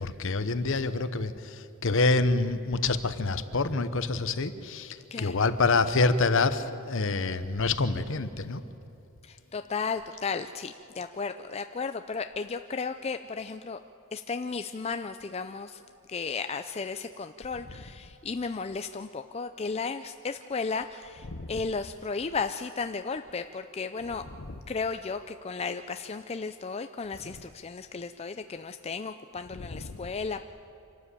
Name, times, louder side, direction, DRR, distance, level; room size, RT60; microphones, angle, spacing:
voice 1, 0.0-1.3 1.8-4.9 5.2-8.6 21.3-21.5 29.7-29.9, left 3 dB, 60° left, 12 dB, 0.9 m, -26 dB
voice 2, 9.3-13.8 14.1-15.8 16.1-24.2 24.7-30.4, left 4 dB, 25° left, 8 dB, 0.4 m, -34 dB
26.5 x 12.5 x 8.4 m, 2.9 s
head